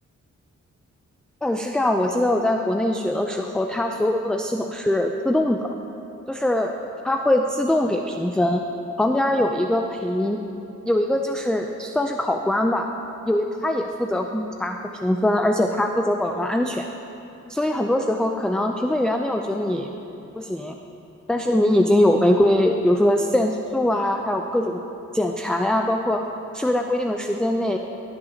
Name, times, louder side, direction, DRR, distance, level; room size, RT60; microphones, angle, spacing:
voice 1, 1.4-5.7 6.3-6.8 7.0-8.6 9.0-10.4 10.9-12.9 13.3-16.9 17.5-19.9 20.4-20.8 21.3-24.8 25.1-26.2 26.5-27.8, left 1 dB, 5° left, 3 dB, 0.4 m, -22 dB
17.5 x 6.8 x 2.8 m, 2.9 s
cardioid pair, 60°, 30 cm